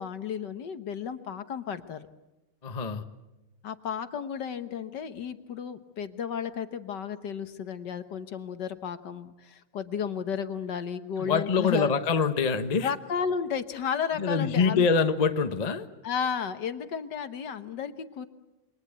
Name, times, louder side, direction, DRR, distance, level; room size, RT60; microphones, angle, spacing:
voice 1, 0.0-2.1 3.6-11.9 12.8-14.9 16.0-18.3, left 7 dB, 60° left, 11 dB, 1.6 m, -33 dB
voice 2, 2.6-3.0 11.2-12.9 14.2-15.9, left 5 dB, 30° left, 9 dB, 0.8 m, -25 dB
28.5 x 24.0 x 8.2 m, 1.0 s
omnidirectional pair, 2.3 m